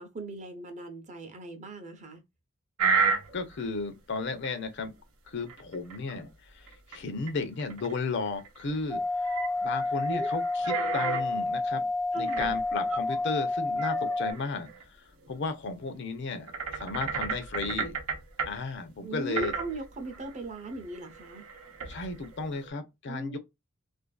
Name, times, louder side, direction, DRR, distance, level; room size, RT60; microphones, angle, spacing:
voice 1, 0.0-2.2 10.0-10.3 12.1-12.6 19.0-21.4 23.1-23.4, right 3 dB, 35° right, 0.6 m, -38 dB
sound 1, 2.8-3.7 4.4-4.5 5.5-6.3 6.7-7.0 7.3-7.4 7.6-8.8 9.1-11.2 12.3-13.3 13.8-14.8 15.2-15.3 16.5-18.5 19.3-22.7, right 5 dB, 85° right, 0.7 m, -33 dB
voice 2, 3.3-4.9 5.3-11.8 12.1-14.7 15.3-18.0 18.4-19.5 21.9-23.4, left 4 dB, 55° left, 0.5 m, -34 dB
sound 2, 8.9-14.3, left 2 dB, 5° left, 0.4 m, -29 dB
2.5 x 2.4 x 2.3 m
head